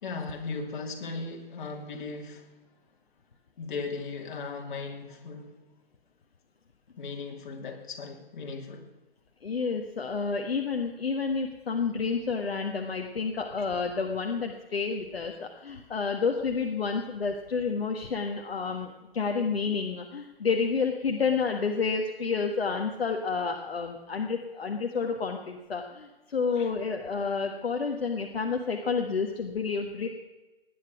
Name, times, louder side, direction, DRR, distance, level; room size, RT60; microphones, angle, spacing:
voice 1, 0.0-2.5 3.6-5.6 7.0-8.8 26.5-26.7, left 4 dB, 50° left, 2.8 m, -37 dB
voice 2, 9.4-30.1, left 5 dB, 70° left, 1.6 m, -30 dB
18.5 x 10.5 x 6.0 m
figure-of-eight pair, 125°, 31 cm